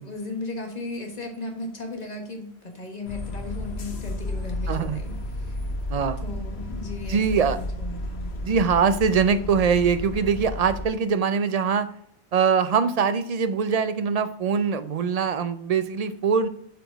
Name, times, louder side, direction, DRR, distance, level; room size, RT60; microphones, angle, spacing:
voice 1, 0.0-5.6 6.2-8.3, left 2 dB, 40° left, 2 dB, 1.5 m, -36 dB
sound 1, 3.0-10.8, left 1 dB, 75° left, 1.2 m, -32 dB
voice 2, 4.7-5.0 5.9-6.3 7.1-7.6 8.4-11.9 12.3-16.5, right 6 dB, 50° right, 12 dB, 0.5 m, -23 dB
8.0 x 4.9 x 3.9 m, 0.66 s
omnidirectional pair, 1.1 m